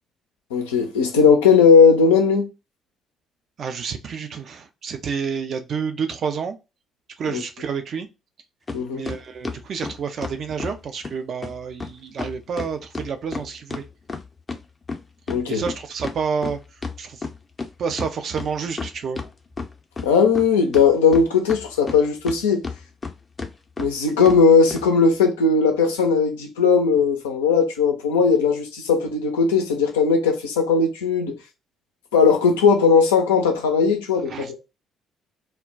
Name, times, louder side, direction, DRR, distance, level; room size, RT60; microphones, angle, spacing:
voice 1, 0.5-2.5 7.3-7.4 8.7-9.0 15.3-15.6 20.0-22.6 23.8-31.4 32.1-34.6, left 5 dB, 80° left, 0.5 m, -18 dB
voice 2, 3.6-6.6 7.2-8.1 8.9-13.8 15.5-16.6 17.0-17.3 17.8-19.2 34.3-34.5, right 6 dB, 55° right, 0.5 m, -29 dB
sound 1, 8.7-8.8 9.1-10.8 11.0-11.1 11.4-11.5 11.8-11.9 12.2-14.6 14.9-17.7 18.0-18.1 18.4-19.3 19.6-20.5 20.7-22.4 22.6-23.1 23.4-23.5 23.8-23.9 24.3-24.4 24.7-24.9, left 4 dB, 30° left, 0.6 m, -31 dB
2.2 x 2.1 x 3.7 m
figure-of-eight pair, 45°, 0 cm